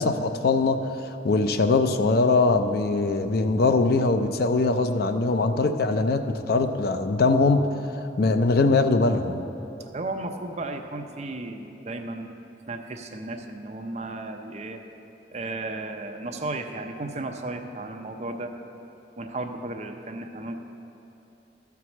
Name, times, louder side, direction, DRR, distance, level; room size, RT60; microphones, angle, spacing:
voice 1, 0.0-7.6 8.2-9.4, left 3 dB, 60° left, 8 dB, 0.5 m, -22 dB
voice 2, 9.9-12.3 12.7-14.8 15.3-18.5 19.2-20.6, right 2 dB, 40° right, 5 dB, 0.6 m, -34 dB
13.0 x 4.7 x 7.1 m, 3.0 s
head